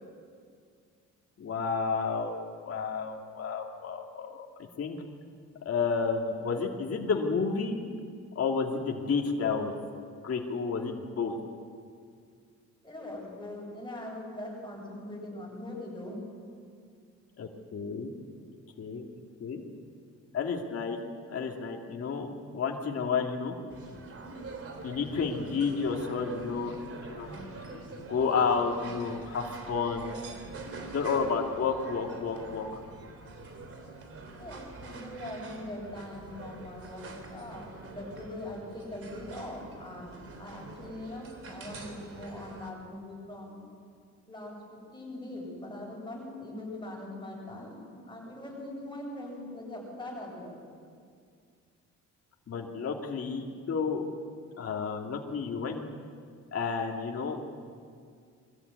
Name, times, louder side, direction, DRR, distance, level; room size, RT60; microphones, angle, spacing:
voice 1, 1.4-4.5 4.8-5.0 5.6-7.8 8.3-9.7 10.2-11.3 17.4-18.1 18.8-19.0 19.4-19.6 20.3-21.0 21.3-23.5 24.8-26.7 27.1-27.4 28.1-30.1 30.9-32.7 52.5-54.1 54.6-55.9 56.5-57.5, left 5 dB, 50° left, 1 dB, 2.6 m, -31 dB
voice 2, 12.8-16.2 34.3-43.6 44.3-50.7, left 1 dB, 15° left, -3 dB, 8.0 m, -41 dB
sound 1, 23.7-42.7, right 3 dB, 50° right, 3.3 m, -45 dB
23.0 x 14.0 x 9.5 m, 2.2 s
cardioid pair, 90°, 30 cm